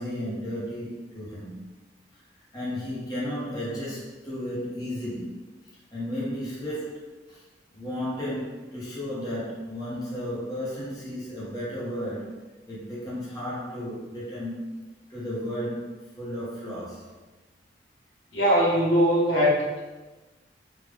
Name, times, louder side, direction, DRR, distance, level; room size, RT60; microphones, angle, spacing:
voice 1, 0.0-1.6 2.1-2.2 2.5-5.4 5.9-7.4 7.7-12.3 12.7-14.8 15.1-17.1, equal, 20° left, -8 dB, 0.9 m, -34 dB
voice 2, 18.3-19.8, equal, 85° left, -5 dB, 1.0 m, -21 dB
3.6 x 2.3 x 3.4 m, 1.2 s
head